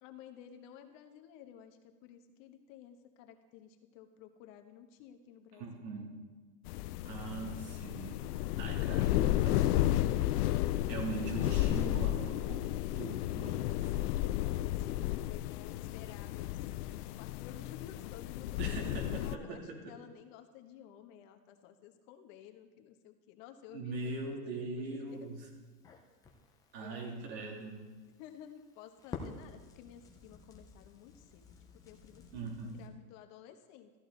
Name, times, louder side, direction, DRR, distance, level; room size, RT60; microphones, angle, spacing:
voice 1, 0.0-5.9 14.8-25.3 26.8-27.3 28.2-31.5 31.8-33.9, left 9 dB, 50° left, 6 dB, 1.3 m, -54 dB
voice 2, 5.6-6.1 7.0-8.2 8.6-10.2 10.9-13.6 18.6-19.9 23.7-25.4 26.7-27.8 32.3-32.8, right 3 dB, 85° right, 0 dB, 3.1 m, -41 dB
sound 1, 6.7-19.4, left 15 dB, 70° left, 0.6 m, -33 dB
Crackle, 25.1-32.9, left 4 dB, 10° left, 0.4 m, -51 dB
14.0 x 11.0 x 3.9 m, 1.3 s
supercardioid pair, 145°, 49 cm